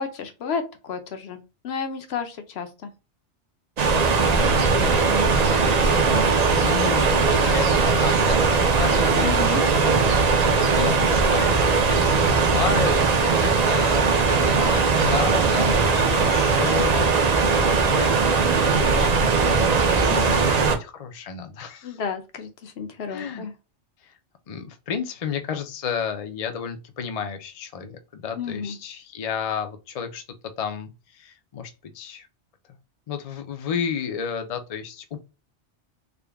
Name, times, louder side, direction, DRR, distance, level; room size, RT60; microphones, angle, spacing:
voice 1, 0.0-2.9 5.0-5.3 6.1-6.2 9.2-9.6 20.1-20.3 21.8-23.5 28.3-28.8, left 6 dB, 65° left, 0.9 m, -32 dB
sound 1, 3.8-20.8, right 4 dB, 45° right, 0.6 m, -19 dB
voice 2, 4.3-14.8 15.1-17.3 17.9-22.0 23.1-23.5 24.0-24.1 24.5-30.2 30.6-32.3 33.1-35.2, left 6 dB, 50° left, 0.4 m, -32 dB
3.7 x 2.2 x 3.4 m
omnidirectional pair, 1.2 m